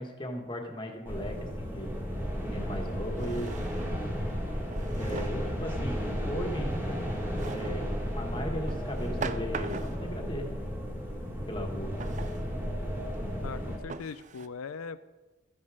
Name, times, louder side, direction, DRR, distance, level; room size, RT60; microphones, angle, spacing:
voice 1, 0.0-2.1 2.4-3.6 5.0-7.0 7.4-10.5 11.5-11.9, equal, 20° left, 3 dB, 1.5 m, -37 dB
sound 1, 1.0-13.8, equal, 10° right, 2.6 m, -33 dB
Drawer open or close, 1.8-1.9 3.1-4.0 4.7-5.5 7.4-7.9 8.7-10.1 12.0-12.5 13.1-13.2 13.9-14.5, right 5 dB, 35° right, 0.4 m, -40 dB
voice 2, 13.4-15.0, left 5 dB, 85° left, 12 dB, 0.5 m, -40 dB
14.0 x 9.6 x 5.0 m, 1.2 s
head